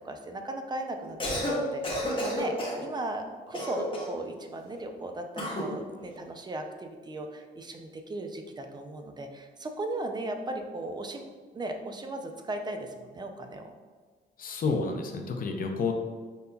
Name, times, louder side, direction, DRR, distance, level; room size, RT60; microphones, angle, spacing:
voice 1, 0.0-11.2 11.5-13.7 15.2-15.4, right 1 dB, 20° right, 5 dB, 0.4 m, -37 dB
Cough, 1.0-1.6 1.8-2.8 3.5-4.2 5.4-5.7, equal, 25° left, 0.9 m, -31 dB
voice 2, 14.4-15.9, left 4 dB, 45° left, 3 dB, 0.5 m, -30 dB
5.3 x 2.2 x 2.2 m, 1.5 s
cardioid pair, 90°, 20 cm